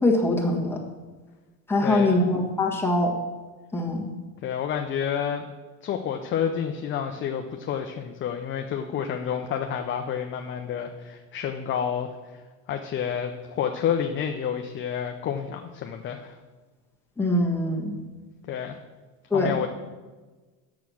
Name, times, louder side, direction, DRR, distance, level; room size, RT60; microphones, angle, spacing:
voice 1, 0.0-0.8 1.7-3.1 3.7-4.1 17.2-18.0 19.3-19.6, left 2 dB, 5° left, -1 dB, 1.6 m, -23 dB
voice 2, 1.8-2.3 4.4-5.4 5.8-12.4 12.7-16.4 18.5-18.8 19.3-19.7, left 8 dB, 30° left, 4 dB, 0.6 m, -29 dB
8.4 x 7.1 x 6.2 m, 1.3 s
supercardioid pair, 130°, 39 cm